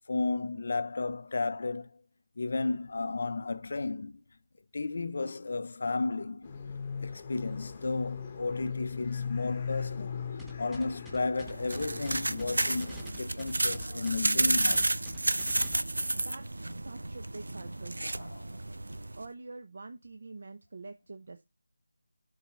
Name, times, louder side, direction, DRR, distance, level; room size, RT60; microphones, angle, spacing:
voice 1, 0.1-1.9 2.4-4.2 4.7-6.5 7.0-10.2 10.6-14.9 18.1-18.5, left 3 dB, 45° left, 0.6 m, -33 dB
sound 1, 6.4-13.1, left 6 dB, 15° left, 1.0 m, -39 dB
sound 2, 10.4-15.8, equal, ahead, 0.7 m, -46 dB
sound 3, 11.4-19.3, right 2 dB, 90° right, 0.7 m, -31 dB
voice 2, 16.1-18.7 19.2-21.4, right 3 dB, 45° right, 0.8 m, -46 dB
7.2 x 4.1 x 4.5 m
figure-of-eight pair, 175°, 0 cm